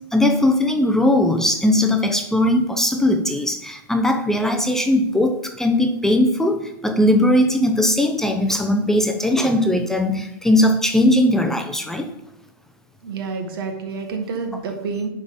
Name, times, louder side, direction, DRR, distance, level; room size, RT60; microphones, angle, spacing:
voice 1, 0.1-12.1, left 1 dB, 5° left, 5 dB, 0.6 m, -19 dB
voice 2, 13.0-15.1, right 4 dB, 75° right, 4 dB, 1.7 m, -28 dB
10.0 x 3.7 x 5.5 m, 0.85 s
hypercardioid pair, 140°, 12 cm